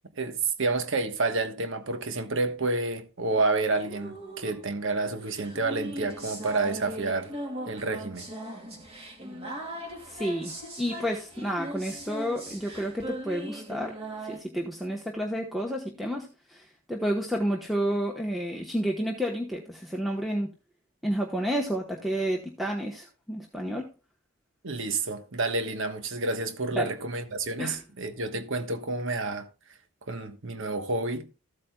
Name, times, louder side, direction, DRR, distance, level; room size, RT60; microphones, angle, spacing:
voice 1, 0.2-7.3 7.7-8.3 24.6-29.5 30.1-31.3, right 3 dB, 60° right, 1.2 m, -29 dB
sound 1, 3.7-14.4, right 1 dB, 30° right, 2.5 m, -39 dB
voice 2, 10.0-10.5 10.8-14.0 14.2-20.5 21.0-23.9 26.7-26.9 27.6-27.8, equal, ahead, 1.1 m, -30 dB
14.5 x 8.4 x 2.3 m
head